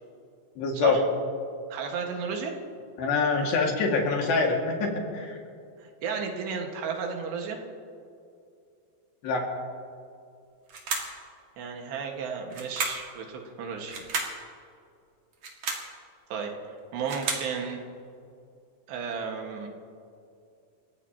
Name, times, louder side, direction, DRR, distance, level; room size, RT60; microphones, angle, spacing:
voice 1, 0.6-1.0 3.0-5.4 9.2-9.4, left 4 dB, 85° left, 0 dB, 4.4 m, -25 dB
voice 2, 1.7-2.5 5.8-7.6 11.6-14.1 16.3-17.8 18.9-19.7, right 6 dB, 90° right, 2 dB, 3.9 m, -33 dB
sound 1, 10.7-11.2 12.5-13.1 13.9-14.4 15.3-15.9 16.8-17.5, right 4 dB, 50° right, 3.1 m, -32 dB
29.0 x 16.0 x 3.0 m, 2.4 s
omnidirectional pair, 4.8 m